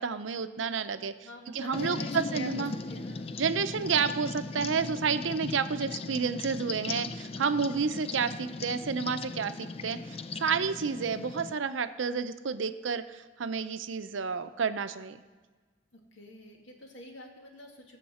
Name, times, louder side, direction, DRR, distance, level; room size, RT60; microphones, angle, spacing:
voice 1, 0.0-1.1 1.5-2.0 2.3-2.7 3.4-10.0 10.4-15.2, right 5 dB, 80° right, 11 dB, 0.6 m, -30 dB
voice 2, 1.2-3.3 7.7-8.1 15.9-18.0, left 1 dB, 80° left, 2 dB, 1.9 m, -46 dB
sound 1, 1.7-11.5, left 3 dB, 30° left, 0.4 m, -38 dB
20.0 x 7.3 x 4.3 m, 1.4 s
head